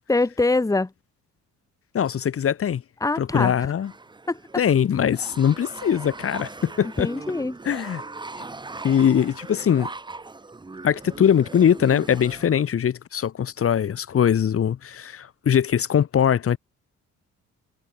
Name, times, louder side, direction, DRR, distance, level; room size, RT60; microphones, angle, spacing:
voice 1, 0.1-0.9 3.0-3.7 4.3-4.4 7.0-7.5, left 3 dB, 10° left, 1.3 m, -23 dB
voice 2, 1.9-2.8 3.2-3.9 4.6-7.1 7.6-8.0 8.8-9.9 10.8-16.6, left 9 dB, 50° left, 1.2 m, -21 dB
sound 1, 3.7-12.6, right 3 dB, 15° right, 1.0 m, -39 dB
cardioid pair, 90°, 30 cm